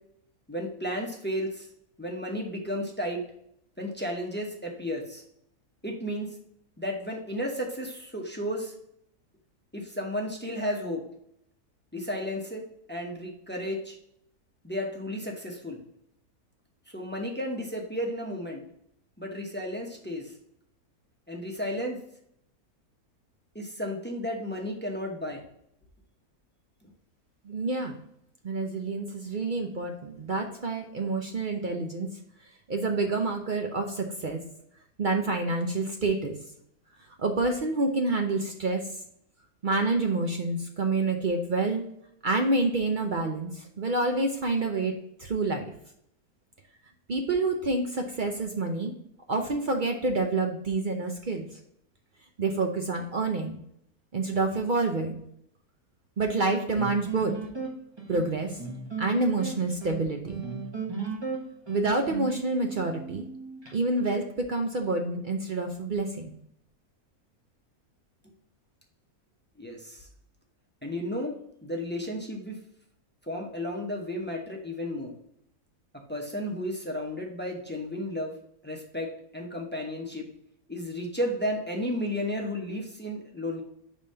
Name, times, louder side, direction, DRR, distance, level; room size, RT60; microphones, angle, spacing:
voice 1, 0.5-1.7 2.0-3.2 3.8-5.2 5.8-6.3 6.8-8.7 9.7-11.0 11.9-12.6 12.9-14.0 14.6-15.8 16.9-18.6 19.2-20.3 21.3-22.0 23.5-25.4 69.6-70.1 70.8-71.3 71.6-72.6 73.3-75.1 76.1-78.3 78.6-79.1 79.3-80.3 80.7-83.6, equal, 10° left, 0 dB, 0.7 m, -33 dB
voice 2, 27.4-28.0 28.4-32.1 32.7-34.4 35.0-36.3 37.2-38.9 39.6-41.9 42.2-44.9 45.2-45.6 47.1-48.9 49.3-51.6 52.4-53.6 54.1-55.2 56.2-57.3 58.1-58.6 59.0-60.4 61.7-63.2 63.7-66.4, right 3 dB, 55° right, 3 dB, 0.5 m, -28 dB
sound 1, 56.8-63.7, right 5 dB, 20° right, 1.0 m, -36 dB
5.1 x 3.6 x 5.4 m, 0.73 s
omnidirectional pair, 1.6 m